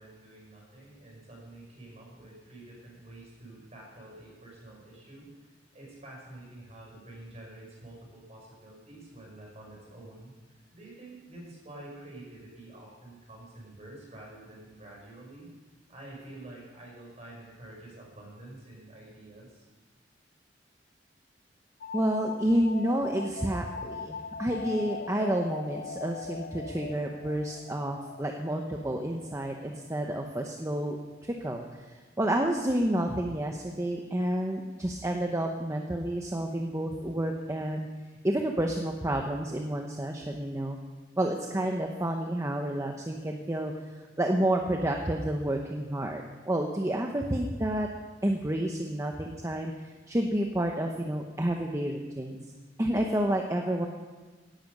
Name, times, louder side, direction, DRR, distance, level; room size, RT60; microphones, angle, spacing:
voice 1, 0.0-15.5 15.9-19.7, right 1 dB, 35° right, -2 dB, 5.8 m, -48 dB
sound 1, 21.8-31.2, left 4 dB, 50° left, 0.5 m, -42 dB
voice 2, 21.9-31.0 31.2-37.9 38.2-40.8 41.2-43.7 44.2-47.9 48.2-49.7 50.1-52.4 52.8-53.9, right 1 dB, 15° right, 2 dB, 0.8 m, -30 dB
16.5 x 10.5 x 5.3 m, 1.3 s
head